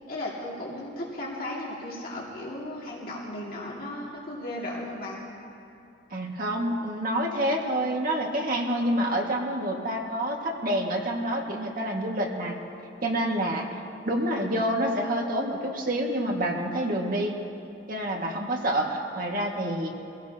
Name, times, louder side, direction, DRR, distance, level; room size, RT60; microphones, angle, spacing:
voice 1, 0.1-5.2, left 1 dB, 55° left, -5 dB, 2.4 m, -35 dB
voice 2, 6.1-12.6 13.0-17.4 17.9-19.9, right 1 dB, 50° right, -1 dB, 2.0 m, -28 dB
25.0 x 16.0 x 2.9 m, 2.6 s
head